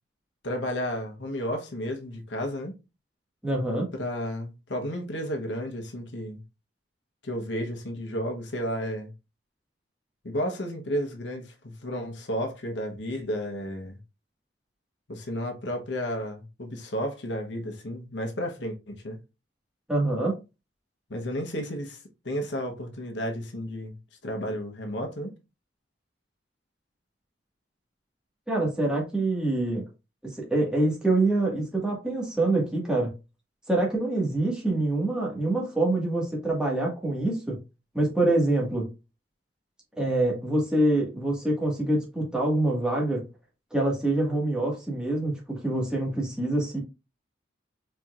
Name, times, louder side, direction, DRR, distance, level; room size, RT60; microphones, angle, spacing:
voice 1, 0.4-2.7 3.9-6.4 7.2-9.1 10.2-14.0 15.1-19.2 21.1-22.0 22.2-23.9 24.2-25.3, equal, 80° left, 1.0 m, -32 dB
voice 2, 3.4-3.9 19.9-20.4 28.5-29.8 30.2-33.1 33.7-37.6 37.9-38.9 40.0-43.2 43.7-46.8, right 2 dB, 5° right, 1.6 m, -25 dB
4.4 x 4.4 x 2.4 m
head